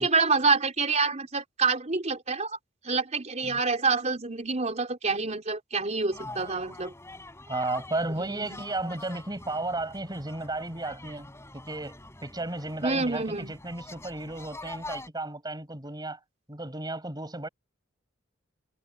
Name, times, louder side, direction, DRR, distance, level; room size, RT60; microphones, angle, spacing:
voice 1, 0.0-2.6 2.8-6.9 8.2-8.6 12.8-13.5, right 4 dB, 35° right, 3.6 m, -27 dB
sound 1, 6.1-15.1, left 2 dB, 15° left, 7.0 m, -45 dB
voice 2, 7.5-16.2 16.5-17.5, right 2 dB, 20° right, 5.5 m, -34 dB
head